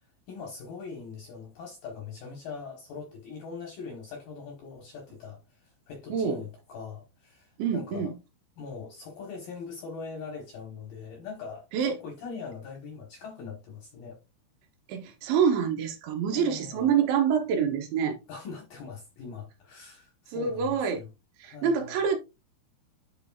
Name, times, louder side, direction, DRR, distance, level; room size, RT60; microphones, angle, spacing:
voice 1, 0.3-8.1 8.6-14.2 16.3-16.9 18.3-21.1 21.4-22.0, left 5 dB, 70° left, 2.3 m, -42 dB
voice 2, 6.1-6.4 7.6-8.2 11.7-11.9 14.9-18.2 20.3-21.0 21.4-22.2, right 7 dB, 75° right, 3.0 m, -26 dB
11.0 x 4.0 x 2.4 m
omnidirectional pair, 5.7 m